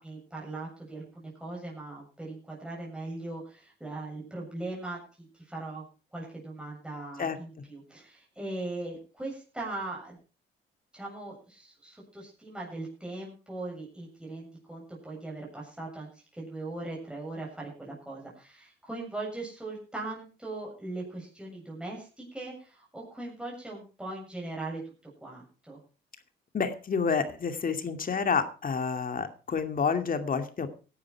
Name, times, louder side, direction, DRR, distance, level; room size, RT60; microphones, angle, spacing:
voice 1, 0.0-5.0 5.3-5.9 6.1-10.2 10.9-25.8, right 2 dB, 5° right, -4 dB, 7.4 m, -39 dB
voice 2, 26.5-30.7, left 5 dB, 45° left, 8 dB, 2.5 m, -29 dB
16.5 x 11.5 x 4.7 m, 0.35 s
cardioid pair, 90°, 20 cm